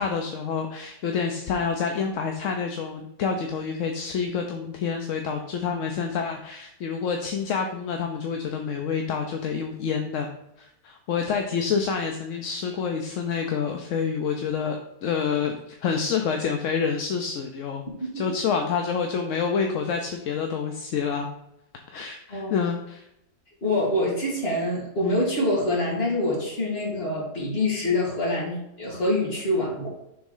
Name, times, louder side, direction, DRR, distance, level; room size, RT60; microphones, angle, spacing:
voice 1, 0.0-10.3 10.6-17.8 18.1-21.3 21.9-23.0, left 6 dB, 60° left, 4 dB, 0.9 m, -28 dB
voice 2, 17.9-18.2 22.3-22.7 23.6-29.9, left 1 dB, 40° left, -3 dB, 2.4 m, -26 dB
6.2 x 3.6 x 5.5 m, 0.83 s
omnidirectional pair, 1.6 m